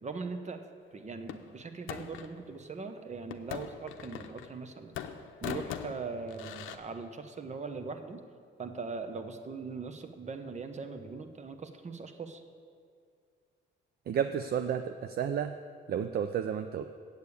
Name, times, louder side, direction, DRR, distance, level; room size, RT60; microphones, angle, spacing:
voice 1, 0.0-0.6 0.9-5.0 5.4-8.2 8.6-12.4, right 4 dB, 35° right, 8 dB, 0.9 m, -40 dB
sound 1, 1.3-2.3 3.3-4.7 4.9-6.8, left 9 dB, 85° left, 0.6 m, -41 dB
voice 2, 14.1-15.5 15.9-16.8, right 8 dB, 55° right, 8 dB, 0.5 m, -31 dB
8.2 x 6.9 x 8.4 m, 2.2 s
cardioid pair, 90°, 20 cm